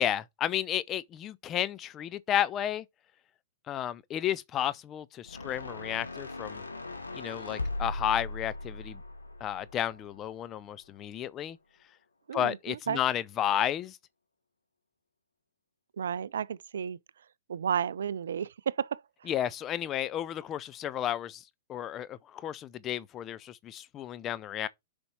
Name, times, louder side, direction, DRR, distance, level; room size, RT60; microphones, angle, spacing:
voice 1, 0.0-2.8 3.7-6.6 7.1-9.0 9.4-11.6 12.3-14.0 19.3-21.4 21.7-24.7, left 11 dB, 25° left, 0.6 m, -32 dB
sound 1, 5.3-10.5, left 2 dB, 80° left, 1.7 m, -39 dB
voice 2, 12.3-13.0 16.0-17.0 17.5-19.3, right 8 dB, 60° right, 0.3 m, -33 dB
6.8 x 5.3 x 4.5 m
figure-of-eight pair, 105°, 0 cm